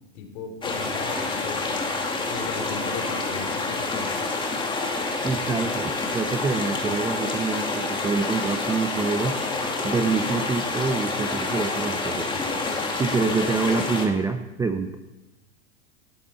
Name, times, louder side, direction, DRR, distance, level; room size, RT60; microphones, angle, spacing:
voice 1, 0.2-4.1, left 6 dB, 55° left, 4 dB, 3.5 m, -37 dB
sound 1, 0.6-14.1, left 3 dB, 10° left, 2.3 m, -28 dB
voice 2, 5.2-9.4 9.8-12.3 13.0-15.0, right 4 dB, 10° right, 8 dB, 0.5 m, -26 dB
17.5 x 12.5 x 4.3 m, 1.0 s
hypercardioid pair, 125°, 38 cm